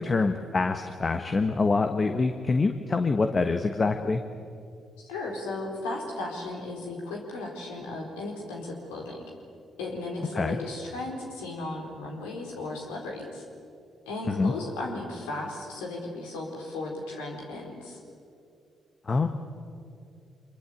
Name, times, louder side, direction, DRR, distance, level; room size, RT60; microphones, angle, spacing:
voice 1, 0.0-4.2 10.3-10.6 14.3-14.5 19.1-19.3, left 3 dB, 40° left, 7 dB, 1.4 m, -25 dB
voice 2, 5.0-9.3 9.8-13.4 14.1-18.0, left 2 dB, 85° left, -1 dB, 4.2 m, -35 dB
25.0 x 22.5 x 8.4 m, 2.5 s
hypercardioid pair, 45°, 0 cm